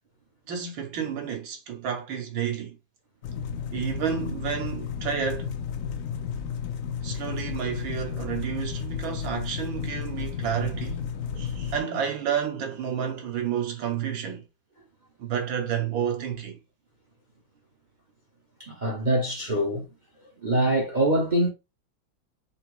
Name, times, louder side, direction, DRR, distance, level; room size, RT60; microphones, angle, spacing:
voice 1, 0.5-2.8 3.7-5.5 7.0-11.0 11.4-14.4 15.2-16.6, right 8 dB, 80° right, 1.9 m, -30 dB
sound 1, 3.2-11.8, left 7 dB, 75° left, 0.7 m, -33 dB
voice 2, 18.6-19.8 20.4-21.5, right 1 dB, 55° right, 0.5 m, -24 dB
5.6 x 2.0 x 4.6 m
omnidirectional pair, 2.2 m